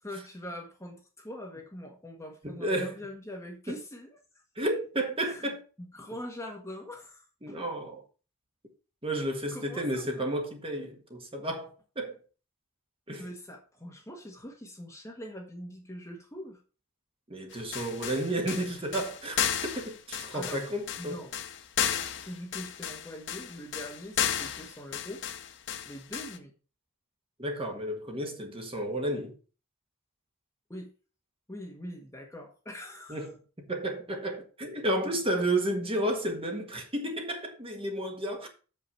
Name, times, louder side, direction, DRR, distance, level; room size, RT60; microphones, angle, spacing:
voice 1, 0.0-4.2 5.2-5.5 5.8-7.6 9.5-10.3 13.2-16.6 20.3-20.6 21.0-21.3 21.8-25.2 25.8-26.5 30.7-30.9 31.5-33.3, left 1 dB, 15° left, 1.4 m, -43 dB
voice 2, 2.4-2.9 3.7-3.8 4.5-5.6 7.4-8.0 9.0-12.2 13.1-13.3 17.3-21.2 27.4-29.3 33.1-33.3 33.6-38.5, right 1 dB, 25° right, 1.6 m, -32 dB
sound 1, 17.5-26.4, left 9 dB, 55° left, 0.8 m, -33 dB
7.1 x 5.6 x 5.7 m
head